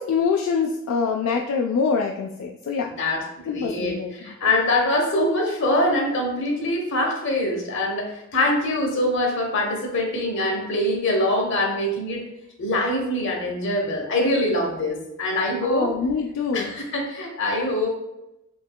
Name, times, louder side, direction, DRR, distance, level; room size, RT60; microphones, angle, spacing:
voice 1, 0.0-2.9 3.5-4.3 15.6-16.8, left 5 dB, 85° left, 2 dB, 0.3 m, -25 dB
voice 2, 2.8-12.3 12.6-15.9 16.5-17.9, left 1 dB, 65° left, 1 dB, 0.9 m, -24 dB
4.4 x 2.8 x 2.2 m, 0.91 s
head